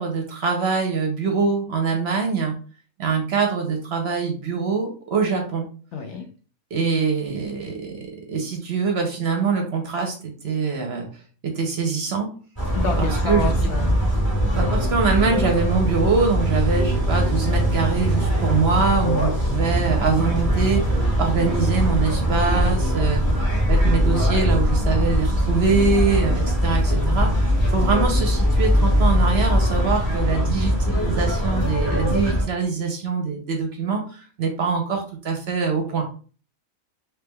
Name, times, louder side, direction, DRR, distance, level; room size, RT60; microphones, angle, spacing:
voice 1, 0.0-2.5 3.0-5.7 6.7-8.0 8.3-11.1 11.4-12.3 13.0-13.5 14.5-20.8 21.2-23.2 23.7-36.0, right 5 dB, 60° right, 2 dB, 0.8 m, -24 dB
voice 2, 5.9-6.3 12.7-14.0 23.2-23.4, left 4 dB, 65° left, 4 dB, 0.8 m, -29 dB
sound 1, 12.6-32.4, equal, 15° left, 1.4 m, -21 dB
3.2 x 3.2 x 2.2 m, 0.38 s
omnidirectional pair, 1.5 m